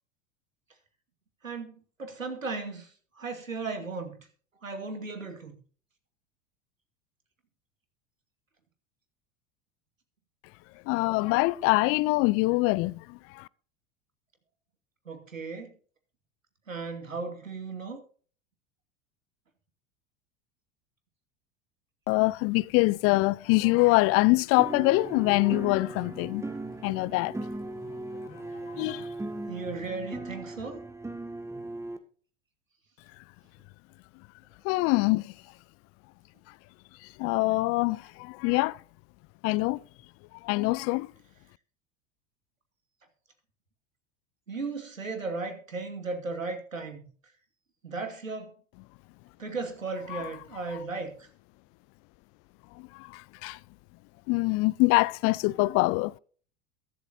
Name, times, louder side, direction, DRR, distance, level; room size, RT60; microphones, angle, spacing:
voice 1, 1.4-2.9 3.2-4.3 4.6-5.6 15.1-15.7 16.7-18.0 29.5-30.8 44.5-47.1 47.8-48.5 49.4-51.3, right 3 dB, 90° right, 2.6 m, -36 dB
voice 2, 10.9-13.5 22.1-26.4 26.8-27.4 28.3-29.1 34.6-35.3 37.0-38.8 39.4-39.8 40.4-41.1 50.1-50.2 52.8-53.6 54.3-56.2, left 23 dB, 40° left, 0.4 m, -25 dB
sound 1, 24.6-32.0, right 2 dB, 5° right, 1.9 m, -38 dB
22.5 x 8.1 x 2.7 m
figure-of-eight pair, 80°, 38 cm